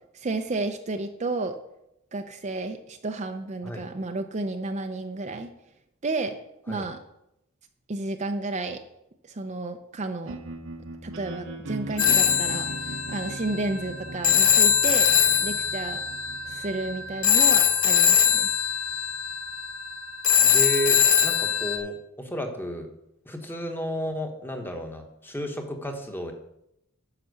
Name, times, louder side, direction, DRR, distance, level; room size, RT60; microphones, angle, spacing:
voice 1, 0.1-1.6 2.1-5.5 6.0-6.3 6.7-7.0 7.9-8.8 9.2-10.4 11.0-15.1 15.4-16.0 16.5-18.5, right 2 dB, 35° right, 6 dB, 0.6 m, -32 dB
sound 1, 10.2-20.3, right 1 dB, 65° right, 1.0 m, -40 dB
Telephone, 12.0-21.8, left 8 dB, 75° left, 1.3 m, -22 dB
voice 2, 20.4-22.9 23.3-26.3, equal, 10° left, 4 dB, 1.2 m, -32 dB
9.9 x 5.8 x 6.5 m, 0.83 s
head